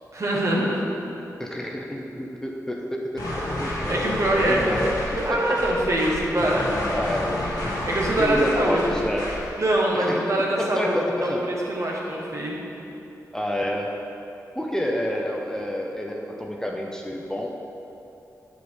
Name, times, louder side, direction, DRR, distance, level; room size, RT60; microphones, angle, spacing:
voice 1, 0.1-0.8 3.9-4.9 5.1-6.7 7.8-9.0 9.6-10.9 11.2-12.5, right 1 dB, 50° right, -3 dB, 1.5 m, -24 dB
voice 2, 1.4-4.9 5.3-5.6 6.9-7.8 8.2-9.4 9.9-10.3 10.6-11.5 13.3-13.9 14.6-17.5, equal, 10° left, 0 dB, 0.7 m, -29 dB
sound 1, 3.2-9.5, left 1 dB, 85° left, 1.6 m, -30 dB
7.1 x 5.1 x 4.8 m, 2.8 s
cardioid pair, 55°, 7 cm